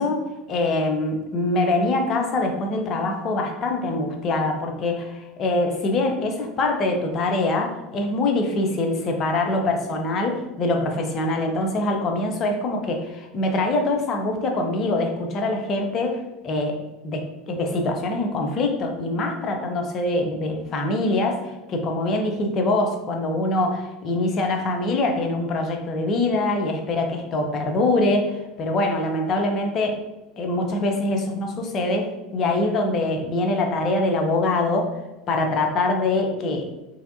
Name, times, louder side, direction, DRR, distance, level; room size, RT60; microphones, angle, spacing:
voice 1, 0.0-30.0 30.4-34.9 35.3-36.7, left 2 dB, 40° left, 3 dB, 0.6 m, -24 dB
3.2 x 2.7 x 2.6 m, 1.0 s
hypercardioid pair, 80°, 0 cm